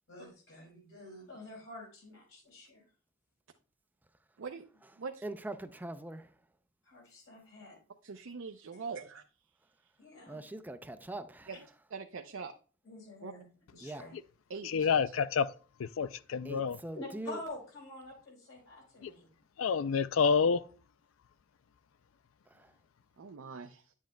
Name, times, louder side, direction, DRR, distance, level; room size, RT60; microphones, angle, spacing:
voice 1, 0.1-2.8 6.8-7.8 8.9-9.0 10.0-10.4 12.8-14.2 16.9-19.3, left 2 dB, 70° left, 4.3 m, -48 dB
voice 2, 5.2-6.3 10.3-11.5 13.8-14.0 16.4-17.4 22.5-22.7, right 1 dB, 10° right, 0.4 m, -42 dB
voice 3, 8.0-9.2 11.5-11.6 11.9-12.5 13.2-13.3 14.5-14.9 23.2-23.9, right 5 dB, 75° right, 0.5 m, -42 dB
voice 4, 14.6-15.5 15.8-16.8 19.0-19.1 19.6-20.7, left 6 dB, 90° left, 0.4 m, -28 dB
10.5 x 7.4 x 2.2 m
head